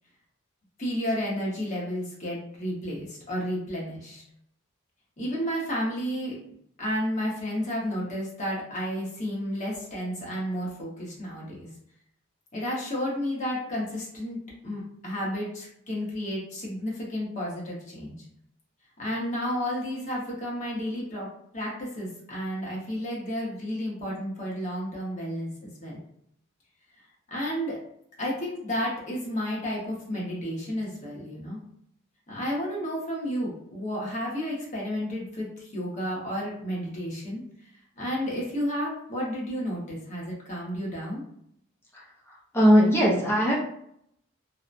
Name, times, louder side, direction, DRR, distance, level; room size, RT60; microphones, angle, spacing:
voice 1, 0.8-4.2 5.2-6.4 6.8-11.7 12.5-18.2 19.0-21.3 21.5-26.0 27.3-27.8 28.2-31.6 32.3-37.4 38.0-41.2, equal, 35° left, -4 dB, 0.9 m, -32 dB
voice 2, 41.9-43.6, equal, 10° left, -5 dB, 0.5 m, -21 dB
2.8 x 2.1 x 2.5 m, 0.71 s
head